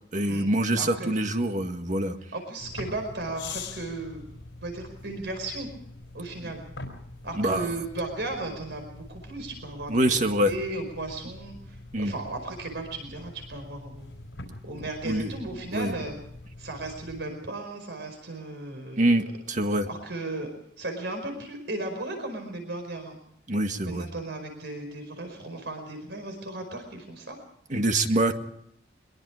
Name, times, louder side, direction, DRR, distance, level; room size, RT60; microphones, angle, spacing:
voice 1, 0.1-2.2 7.4-7.7 9.9-10.5 11.9-12.1 15.0-15.3 15.7-15.9 19.0-19.9 23.5-24.1 27.7-28.3, right 1 dB, 45° right, 6 dB, 1.8 m, -25 dB
voice 2, 0.8-1.1 2.3-4.3 4.6-5.7 6.1-6.6 7.2-10.2 10.4-14.1 14.6-16.2 16.6-19.2 19.9-20.5 20.8-23.2 23.8-27.4, right 2 dB, 70° right, 5 dB, 4.9 m, -35 dB
sound 1, 2.6-17.2, left 3 dB, 75° left, 4.2 m, -44 dB
23.5 x 22.5 x 4.9 m, 0.68 s
head